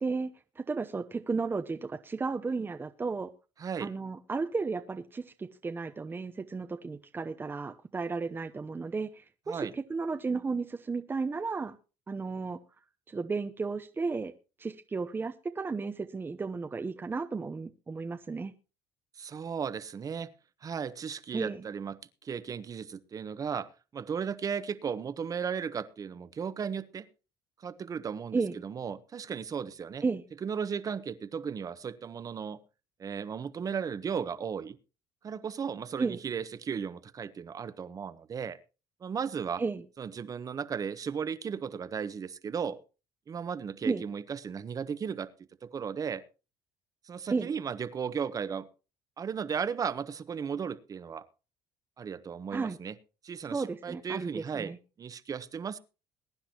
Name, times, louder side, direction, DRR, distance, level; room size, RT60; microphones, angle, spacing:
voice 1, 0.0-3.3 3.8-11.8 12.1-12.6 13.1-14.3 14.6-18.5 21.3-21.7 28.3-28.6 30.0-30.2 36.0-36.2 39.6-39.8 43.8-44.0 47.3-47.5 52.5-52.8 53.5-54.8, right 4 dB, 25° right, 0.8 m, -33 dB
voice 2, 3.6-3.9 9.5-9.7 19.2-20.3 20.6-27.1 27.6-30.0 30.4-32.6 33.0-34.8 35.2-38.6 39.0-39.6 40.0-42.8 43.3-45.3 45.6-46.2 47.1-48.7 49.2-51.2 52.0-53.0 53.2-55.8, right 7 dB, 40° right, 1.1 m, -35 dB
21.5 x 10.0 x 2.9 m
supercardioid pair, 85°, 9 cm